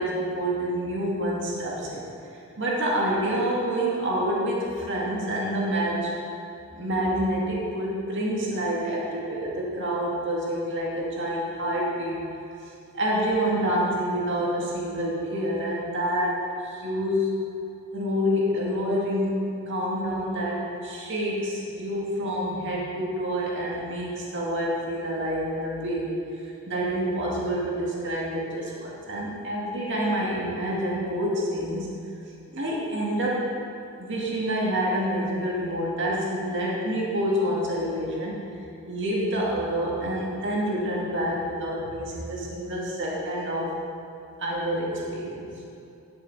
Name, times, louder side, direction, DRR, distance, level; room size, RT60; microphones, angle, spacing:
voice 1, 0.0-2.0 2.3-6.1 6.7-12.2 12.9-17.3 17.9-31.9 32.5-33.5 34.0-38.4 38.9-43.8 44.4-45.5, equal, 60° right, -4 dB, 2.0 m, -27 dB
12.0 x 6.8 x 4.7 m, 2.7 s
head